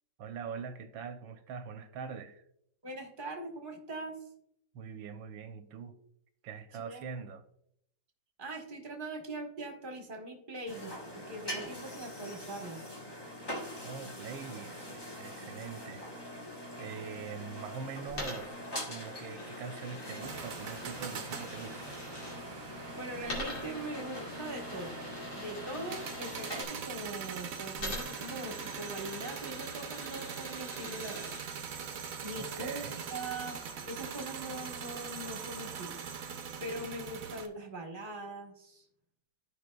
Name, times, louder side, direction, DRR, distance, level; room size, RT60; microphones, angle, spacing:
voice 1, 0.2-2.4 4.7-5.9 6.4-7.4 13.8-16.0 16.8-18.6 18.9-22.0 32.4-33.1, right 6 dB, 90° right, 1.5 m, -43 dB
voice 2, 2.8-4.2 6.8-7.1 8.4-12.8 22.9-25.0 25.3-31.4 32.2-32.8 33.1-33.6 33.9-36.0 36.6-38.8, right 1 dB, 30° right, 1.2 m, -41 dB
sound 1, 10.7-26.6, left 1 dB, 20° left, 0.7 m, -43 dB
Coin (dropping), 18.1-22.4 23.2-26.8 27.8-31.4, left 1 dB, 75° left, 3.0 m, -45 dB
sound 2, 20.2-37.5, right 6 dB, 60° right, 1.0 m, -42 dB
14.5 x 5.2 x 2.3 m
omnidirectional pair, 2.1 m